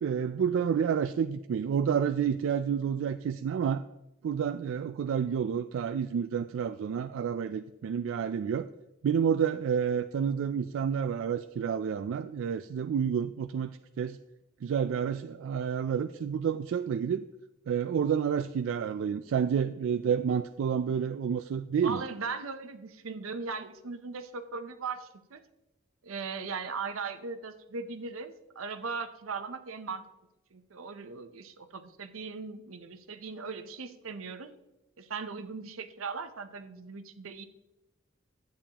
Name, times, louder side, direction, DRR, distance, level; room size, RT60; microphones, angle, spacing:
voice 1, 0.0-3.8 4.2-8.7 9.0-14.2 14.6-17.2 17.7-22.0, right 7 dB, 70° right, 10 dB, 0.3 m, -29 dB
voice 2, 21.8-25.4 26.0-30.0 30.5-34.5 35.0-37.4, right 4 dB, 85° right, 10 dB, 0.7 m, -38 dB
11.0 x 8.5 x 2.9 m, 0.96 s
head